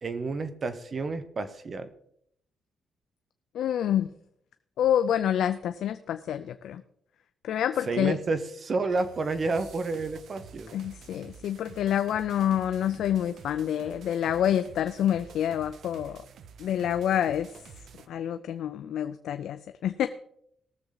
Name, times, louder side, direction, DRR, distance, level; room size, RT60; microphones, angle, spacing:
voice 1, 0.0-1.9 7.9-10.7, right 3 dB, 35° right, 10 dB, 0.9 m, -30 dB
voice 2, 3.5-4.1 4.8-6.8 7.4-8.2 10.7-16.2 16.6-17.5 18.1-20.1, left 10 dB, 70° left, 10 dB, 0.5 m, -27 dB
sound 1, 8.9-18.1, right 6 dB, 60° right, 0.8 m, -49 dB
19.0 x 7.1 x 4.0 m, 0.71 s
cardioid pair, 145°, 0 cm